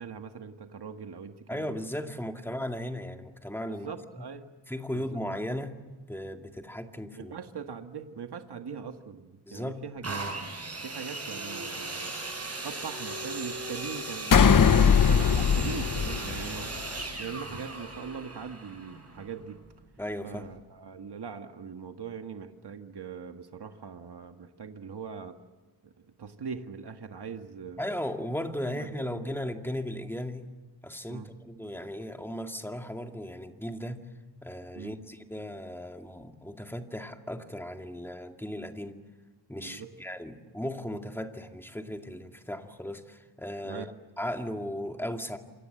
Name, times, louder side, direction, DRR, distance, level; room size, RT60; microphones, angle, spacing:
voice 1, 0.0-1.7 3.7-4.4 4.9-5.1 7.2-10.2 10.8-12.1 12.6-16.7 17.2-19.6 20.2-25.4 25.8-27.8 28.7-29.4 31.1-31.3 34.8-34.9 39.6-39.9 43.6-43.9, right 6 dB, 70° right, 6 dB, 1.8 m, -41 dB
voice 2, 1.5-3.9 4.7-5.8 6.1-7.3 9.4-9.8 20.0-20.5 27.8-30.5 30.8-34.0 34.4-39.0 39.5-43.9 44.2-45.4, left 1 dB, 5° left, 4 dB, 2.2 m, -36 dB
sound 1, 10.0-19.7 20.4-20.5, right 2 dB, 35° right, 7.6 m, -37 dB
sound 2, 14.3-16.9, left 7 dB, 50° left, 0.9 m, -21 dB
28.0 x 24.5 x 7.9 m, 1.2 s
wide cardioid pair, 110°, 41 cm